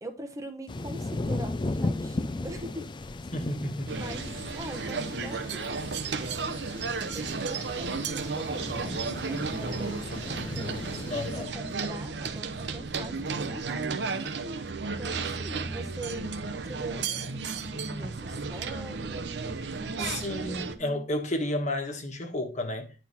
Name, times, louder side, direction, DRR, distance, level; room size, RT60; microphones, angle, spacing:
voice 1, 0.0-2.9 3.9-6.6 7.1-14.5 15.0-21.0, right 1 dB, 20° right, 0.8 m, -43 dB
sound 1, 0.7-11.4, left 2 dB, 25° left, 0.4 m, -36 dB
voice 2, 3.3-4.0 11.1-11.5 20.0-22.9, left 1 dB, 45° left, 1.3 m, -32 dB
sound 2, 3.9-20.8, right 4 dB, 70° right, 0.8 m, -33 dB
10.0 x 4.2 x 4.1 m
head